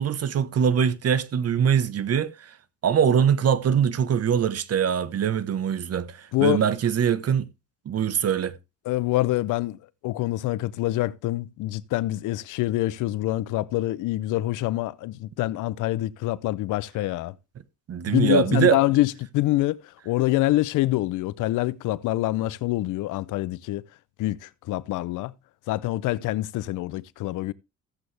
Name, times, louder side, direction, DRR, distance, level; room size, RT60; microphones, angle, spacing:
voice 1, 0.0-2.3 2.8-7.5 7.9-8.5 17.9-18.8, right 8 dB, 55° right, 1.1 m, -22 dB
voice 2, 6.3-6.6 8.9-9.8 10.0-17.4 18.1-23.9 24.2-25.3 25.7-27.5, left 17 dB, 90° left, 0.6 m, -25 dB
14.5 x 7.9 x 3.3 m
cardioid pair, 90°, 30 cm